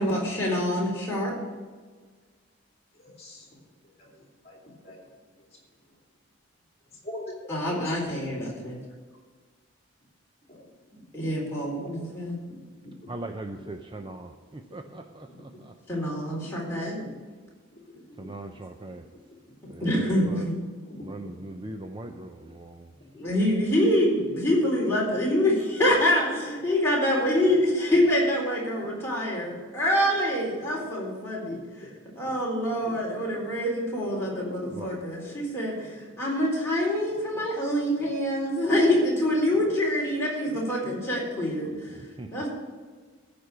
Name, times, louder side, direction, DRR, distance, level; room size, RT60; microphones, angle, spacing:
voice 1, 0.0-1.3 7.5-8.8 11.1-12.4 15.9-17.0 19.8-20.5 23.1-31.6 32.2-41.7 42.3-42.5, left 1 dB, 10° left, -5 dB, 3.9 m, -25 dB
voice 2, 3.0-3.6 4.0-5.1 6.9-7.9 8.3-8.5 10.5-10.6 10.9-11.3 12.5-13.2 15.3-15.6 16.3-16.5 16.9-17.2 17.7-18.5 18.9-19.0 19.6-19.9 20.9-21.6 22.0-22.2 23.0-23.1 27.5-27.6 30.5-30.7 31.4-32.1 32.5-33.4 34.3-35.0 35.3-35.4 40.4-40.6 40.9-41.0 41.6-41.7 42.3-42.4, left 1 dB, 30° left, -1 dB, 2.9 m, -44 dB
voice 3, 13.1-15.7 18.2-19.0 19.7-20.5 21.0-22.9 34.7-34.9 42.2-42.3, right 2 dB, 25° right, 6 dB, 0.5 m, -40 dB
14.5 x 5.2 x 7.9 m, 1.5 s
head